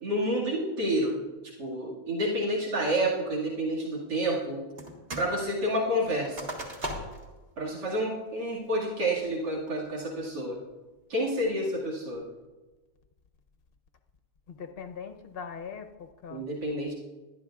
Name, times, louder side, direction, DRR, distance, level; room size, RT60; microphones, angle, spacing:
voice 1, 0.0-1.2 1.4-4.6 5.2-6.5 7.6-10.6 11.1-12.3 16.3-16.9, right 1 dB, 90° right, -5 dB, 2.7 m, -29 dB
sound 1, 4.8-5.3 5.6-7.3 7.8-7.9 8.4-8.8 9.3-9.7, right 1 dB, 40° right, 1.7 m, -38 dB
voice 2, 14.5-16.5, left 6 dB, 50° left, 5 dB, 0.7 m, -41 dB
20.0 x 12.0 x 2.4 m, 1.2 s
omnidirectional pair, 1.8 m